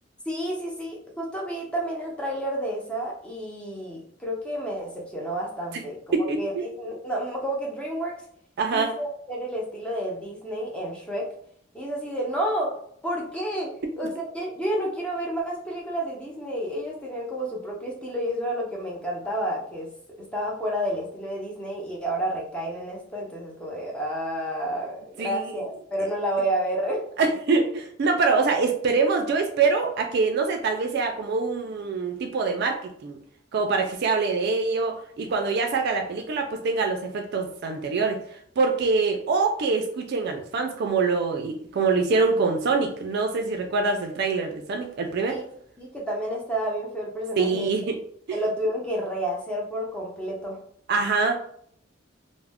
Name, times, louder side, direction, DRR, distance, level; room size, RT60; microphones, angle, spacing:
voice 1, 0.3-8.1 8.7-11.3 11.7-12.7 13.0-19.9 20.2-27.0 45.3-45.4 45.8-47.7 48.3-50.6, right 1 dB, 5° left, -2 dB, 0.6 m, -30 dB
voice 2, 6.1-6.6 8.6-8.9 25.2-25.4 27.2-33.2 33.5-45.4 47.4-48.0 48.3-48.4 50.9-51.4, right 4 dB, 55° right, 4 dB, 0.4 m, -24 dB
2.3 x 2.0 x 3.4 m, 0.65 s
head